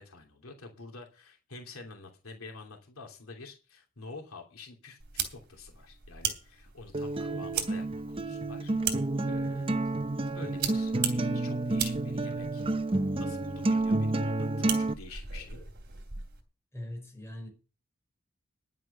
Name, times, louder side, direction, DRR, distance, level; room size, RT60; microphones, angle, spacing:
voice 1, 0.0-8.7 9.2-9.7 10.3-12.7 13.1-15.6, left 3 dB, 80° left, 2.8 m, -48 dB
sound 1, 5.0-16.4, right 8 dB, 55° right, 3.0 m, -39 dB
Acoustic guitar, 6.9-14.9, right 2 dB, 25° right, 0.6 m, -30 dB
voice 2, 16.7-17.5, left 1 dB, 15° left, 5.6 m, -41 dB
11.0 x 8.1 x 6.8 m
head